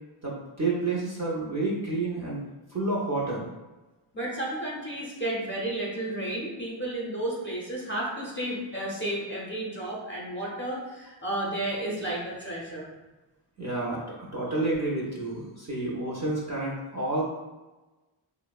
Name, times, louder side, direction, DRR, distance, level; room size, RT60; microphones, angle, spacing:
voice 1, 0.2-2.4 2.7-3.5 13.6-17.2, right 2 dB, 35° right, -6 dB, 0.6 m, -29 dB
voice 2, 4.1-12.9, right 1 dB, 25° left, -5 dB, 0.7 m, -32 dB
2.6 x 2.0 x 2.3 m, 1.1 s
cardioid pair, 55°, 50 cm